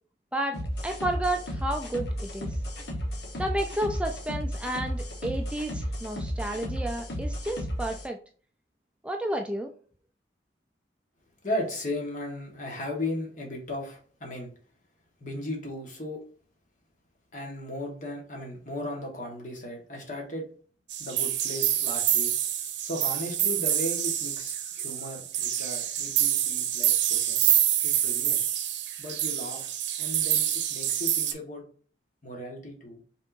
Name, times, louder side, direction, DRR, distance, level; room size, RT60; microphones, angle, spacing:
sound 1, 0.5-8.1, equal, 70° left, 1.2 m, -33 dB
voice 1, 0.8-2.6 3.4-8.2 9.0-9.7, right 1 dB, 5° right, 4 dB, 0.3 m, -31 dB
voice 2, 11.4-14.5 15.2-16.2 17.3-20.5 21.0-22.3 22.8-28.4 29.0-29.7 30.0-31.6 32.2-33.0, left 1 dB, 45° left, 0 dB, 1.5 m, -36 dB
sound 2, 20.9-31.3, right 11 dB, 85° right, 0.7 m, -27 dB
5.3 x 3.7 x 2.6 m, 0.43 s
head